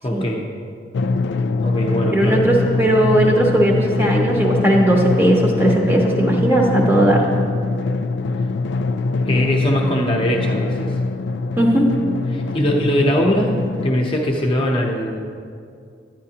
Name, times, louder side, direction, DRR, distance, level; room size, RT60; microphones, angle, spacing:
voice 1, 0.0-0.4 1.6-2.4 9.3-11.0 12.3-15.3, equal, 30° left, 0 dB, 0.7 m, -21 dB
Drum, 0.9-13.9, left 3 dB, 75° left, 0.3 m, -23 dB
voice 2, 2.1-7.2 11.6-11.9, right 1 dB, 10° right, -1 dB, 0.8 m, -17 dB
9.9 x 9.5 x 2.8 m, 2.3 s
head